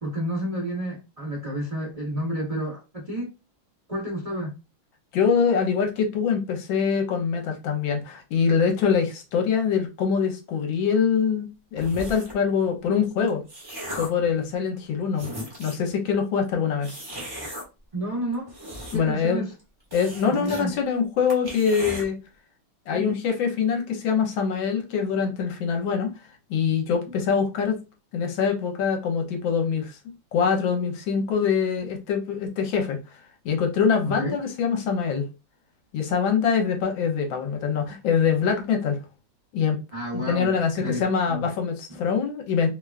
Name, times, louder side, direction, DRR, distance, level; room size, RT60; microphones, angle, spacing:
voice 1, 0.0-3.3 3.9-4.6 17.9-18.5 18.9-19.5 20.3-20.7 22.9-23.0 34.0-34.3 39.9-41.4 41.9-42.0, equal, 65° right, 0.3 m, -30 dB
voice 2, 5.1-13.4 14.0-15.3 15.6-17.0 18.9-19.4 19.9-22.2 22.9-26.1 26.5-27.8 28.1-29.9 30.3-33.0 33.4-35.3 35.9-39.0 39.5-39.8 40.1-42.7, left 6 dB, 75° left, 1.3 m, -24 dB
sound 1, 11.8-12.4 13.1-14.3 14.8-14.9 15.1-15.9 16.8-17.6 18.3-19.2 19.5-19.6 19.9-20.6 21.0-21.1 21.3-22.0, equal, 20° right, 0.6 m, -36 dB
3.3 x 2.2 x 2.3 m
omnidirectional pair, 2.2 m